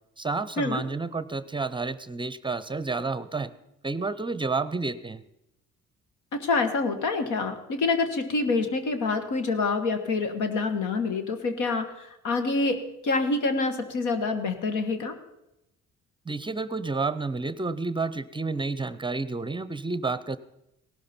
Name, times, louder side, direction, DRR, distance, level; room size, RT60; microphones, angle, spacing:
voice 1, 0.2-3.5 3.8-5.2 16.3-20.4, right 3 dB, 15° right, 15 dB, 0.6 m, -30 dB
voice 2, 6.3-15.2, left 3 dB, 85° left, 8 dB, 1.6 m, -27 dB
17.5 x 12.0 x 4.4 m, 0.86 s
cardioid pair, 90°, 30 cm